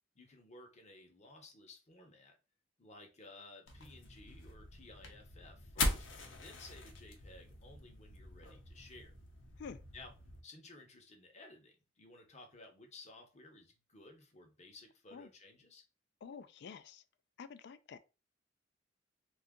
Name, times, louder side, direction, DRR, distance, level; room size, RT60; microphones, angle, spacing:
voice 1, 0.1-2.4 2.8-6.1 6.3-9.1 9.9-10.1 10.4-15.8, left 2 dB, 35° left, 0.8 m, -56 dB
sound 1, 3.7-10.4, left 2 dB, 85° left, 0.8 m, -42 dB
voice 2, 16.2-17.0 17.4-18.0, left 6 dB, 60° left, 0.3 m, -49 dB
2.7 x 2.4 x 3.6 m
head